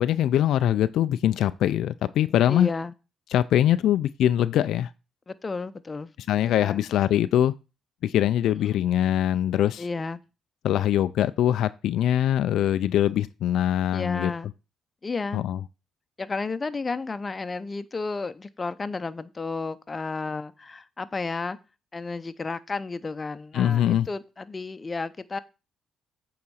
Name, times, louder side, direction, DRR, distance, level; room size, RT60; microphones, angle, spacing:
voice 1, 0.0-2.7 3.3-4.9 6.3-7.5 8.0-9.8 10.6-14.3 15.3-15.6 23.5-24.1, left 11 dB, 80° left, 0.4 m, -23 dB
voice 2, 2.5-2.9 5.3-6.1 6.6-6.8 8.6-8.8 9.8-10.2 13.9-14.5 15.0-15.4 16.2-21.6 21.9-25.4, left 3 dB, 30° left, 0.7 m, -32 dB
8.6 x 3.9 x 6.2 m
cardioid pair, 90°, 0 cm